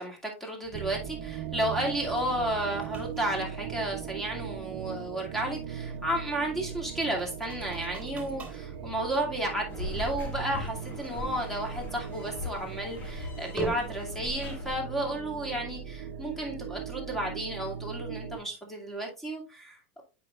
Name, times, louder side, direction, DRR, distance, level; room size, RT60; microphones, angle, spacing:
voice 1, 0.0-20.0, right 1 dB, 5° left, 0 dB, 2.4 m, -33 dB
sound 1, 0.6-16.4, right 3 dB, 20° right, 3.3 m, -46 dB
sound 2, 0.7-18.4, right 8 dB, 60° right, 0.7 m, -39 dB
sound 3, 9.7-14.8, left 2 dB, 30° left, 2.3 m, -39 dB
8.2 x 5.3 x 2.4 m, 0.31 s
hypercardioid pair, 105°, 7 cm